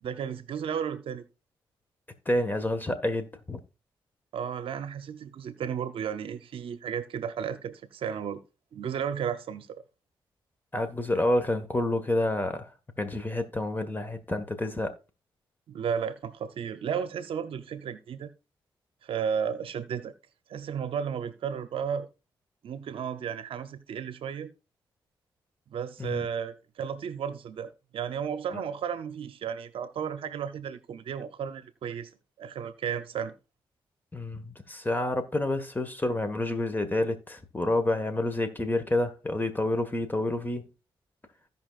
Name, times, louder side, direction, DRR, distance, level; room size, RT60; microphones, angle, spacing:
voice 1, 0.0-1.2 4.3-8.4 8.7-9.8 15.7-18.3 19.0-20.1 20.5-22.1 22.6-24.5 25.7-32.1 32.4-33.3, right 7 dB, 75° right, 0.7 m, -33 dB
voice 2, 2.2-3.6 10.7-12.7 13.0-14.9 26.0-26.2 28.5-28.6 34.1-40.7, left 1 dB, 20° left, 1.6 m, -28 dB
15.5 x 5.4 x 2.5 m
cardioid pair, 60°, 9 cm